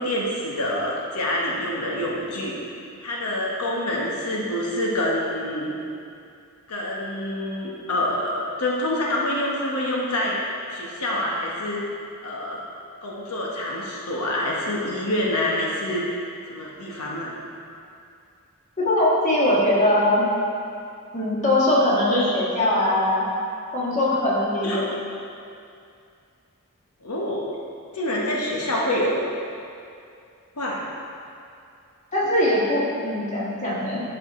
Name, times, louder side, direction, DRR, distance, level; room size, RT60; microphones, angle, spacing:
voice 1, 0.0-2.6 3.0-5.7 6.7-10.4 10.7-11.8 12.2-12.6 13.0-17.3 24.6-24.8 27.0-27.5 27.9-29.1 30.6-30.8, left 1 dB, 90° left, -3 dB, 1.1 m, -26 dB
voice 2, 18.8-20.3 21.1-23.3 23.7-24.9 32.1-34.0, left 1 dB, 35° left, -6 dB, 1.7 m, -21 dB
12.0 x 4.9 x 3.7 m, 2.5 s
head